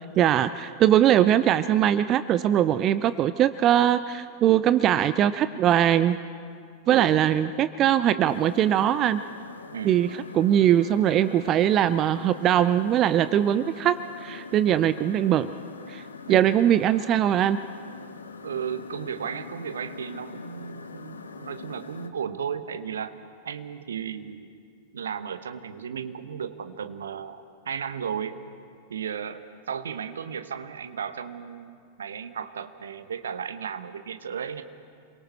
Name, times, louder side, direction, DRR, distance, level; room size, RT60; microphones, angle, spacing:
voice 1, 0.2-6.2 6.9-9.2 9.8-15.5 15.9-16.0 16.3-17.6, right 11 dB, 35° right, 14 dB, 0.5 m, -21 dB
sound 1, 8.2-22.1, left 5 dB, 70° left, 0.9 m, -42 dB
voice 2, 18.4-23.1 23.4-24.5 24.9-28.4 28.9-34.6, right 7 dB, 65° right, 10 dB, 1.1 m, -34 dB
27.5 x 23.0 x 4.5 m, 2.2 s
figure-of-eight pair, 90°, 0 cm